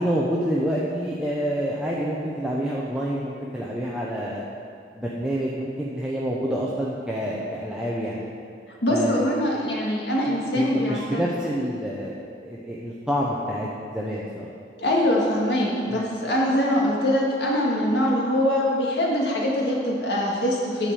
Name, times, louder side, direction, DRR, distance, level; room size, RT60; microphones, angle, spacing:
voice 1, 0.0-4.4 4.9-8.3 8.9-9.3 10.3-14.5 15.9-16.0, equal, 5° right, -5 dB, 0.7 m, -28 dB
voice 2, 8.8-11.2 14.8-20.9, left 1 dB, 70° left, -3 dB, 1.9 m, -23 dB
10.5 x 5.0 x 7.0 m, 2.3 s
head